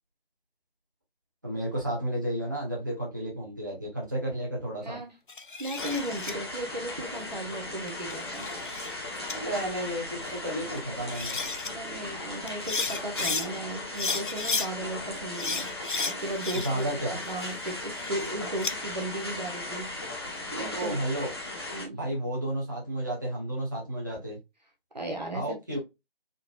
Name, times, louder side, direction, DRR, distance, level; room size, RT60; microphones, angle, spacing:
voice 1, 1.4-5.0 9.2-11.4 16.5-17.2 20.7-21.3 21.9-24.4 25.3-25.8, right 1 dB, 20° right, 0.9 m, -32 dB
sound 1, 5.3-6.3 7.9-8.9 9.3-9.4 10.8-10.9 11.1-11.7 12.5-13.5 13.9-14.7 15.4-16.9 17.2-18.7, left 4 dB, 55° left, 0.4 m, -33 dB
voice 2, 5.6-8.5 11.7-20.1 20.5-21.0 21.7-22.0 24.9-25.8, right 1 dB, 45° right, 1.0 m, -36 dB
sound 2, 5.8-21.9, left 2 dB, 25° left, 0.9 m, -37 dB
3.8 x 2.8 x 2.2 m
figure-of-eight pair, 165°, 30 cm